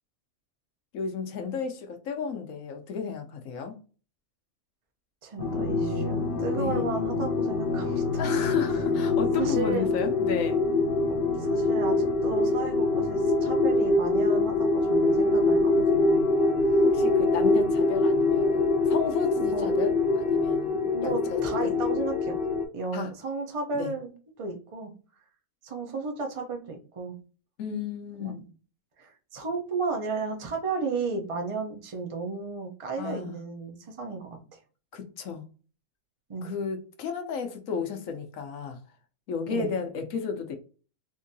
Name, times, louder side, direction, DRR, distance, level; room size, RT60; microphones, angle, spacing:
voice 1, 0.9-3.7 6.5-6.9 8.2-10.6 16.8-21.7 22.9-23.1 23.7-23.9 27.6-28.4 33.0-33.4 34.9-35.4 36.4-38.8 39.3-40.6, left 6 dB, 70° left, 1.1 m, -33 dB
voice 2, 5.2-8.0 9.3-9.9 11.1-16.3 19.4-19.7 20.9-22.4 22.7-24.1 24.4-24.9 25.6-27.1 28.2-28.4 29.0-34.4 36.3-36.5 39.5-39.7, right 4 dB, 35° right, 0.5 m, -33 dB
sound 1, 5.4-22.7, left 3 dB, 50° left, 0.7 m, -24 dB
3.7 x 2.7 x 2.6 m
omnidirectional pair, 1.5 m